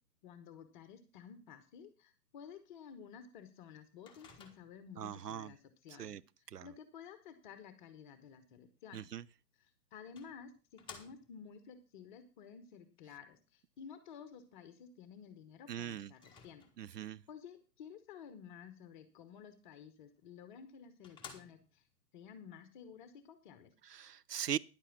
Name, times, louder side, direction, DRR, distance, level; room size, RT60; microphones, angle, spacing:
voice 1, 0.2-9.1 9.6-16.6 17.3-21.8 22.1-23.7, left 7 dB, 30° left, 1.2 m, -53 dB
Microwave oven, 4.1-5.0 9.3-9.4 10.2-11.5 16.1-17.0 20.2-20.3 20.7-20.8 21.0-21.9, left 6 dB, 10° left, 1.6 m, -55 dB
voice 2, 5.0-5.5 6.0-6.2 6.5-6.7 8.9-9.2 15.7-16.1 16.8-17.2 23.9-24.6, right 9 dB, 75° right, 0.6 m, -40 dB
10.5 x 8.2 x 6.1 m
figure-of-eight pair, 130°, 48 cm